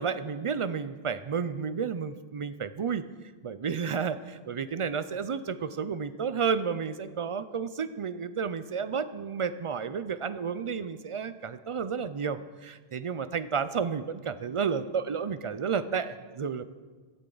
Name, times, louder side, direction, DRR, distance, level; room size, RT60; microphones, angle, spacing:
voice 1, 0.0-3.0 3.4-16.6, right 6 dB, 50° right, 13 dB, 0.4 m, -31 dB
15.0 x 12.0 x 3.9 m, 1.4 s
omnidirectional pair, 1.0 m